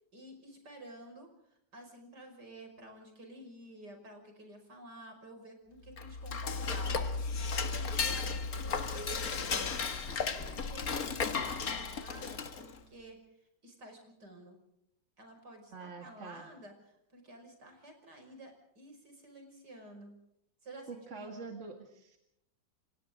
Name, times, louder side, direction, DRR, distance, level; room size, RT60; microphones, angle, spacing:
voice 1, 0.1-1.3 1.7-7.1 7.4-13.2 13.6-14.6 15.2-16.7 17.1-20.2 20.6-21.3, right 1 dB, 65° right, 4 dB, 6.2 m, -51 dB
Dishes pots and pans / Cutlery silverware, 5.9-12.8, left 5 dB, 55° left, 2.0 m, -34 dB
voice 2, 15.7-16.5 20.9-22.2, right 4 dB, 40° right, 3 dB, 2.4 m, -45 dB
28.5 x 26.5 x 3.7 m, 0.78 s
omnidirectional pair, 2.0 m